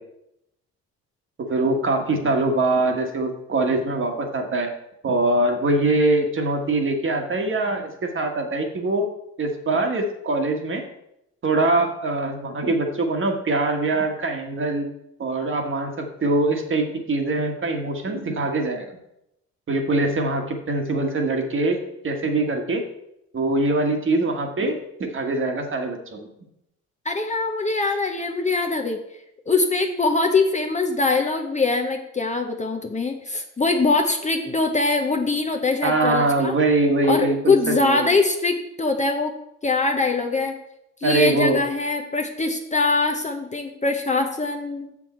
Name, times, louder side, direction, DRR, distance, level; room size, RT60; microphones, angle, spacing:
voice 1, 1.4-4.7 5.0-9.0 9.4-10.8 11.4-14.9 15.2-19.0 19.7-21.8 22.0-22.8 23.3-24.7 25.0-26.3 35.8-38.1 41.0-41.6, right 2 dB, 40° right, 4 dB, 1.5 m, -23 dB
voice 2, 27.0-29.0 29.5-36.5 37.1-39.3 39.6-40.5 41.0-44.9, left 3 dB, 20° left, 3 dB, 0.8 m, -22 dB
6.9 x 6.2 x 4.4 m, 0.82 s
supercardioid pair, 75°, 33 cm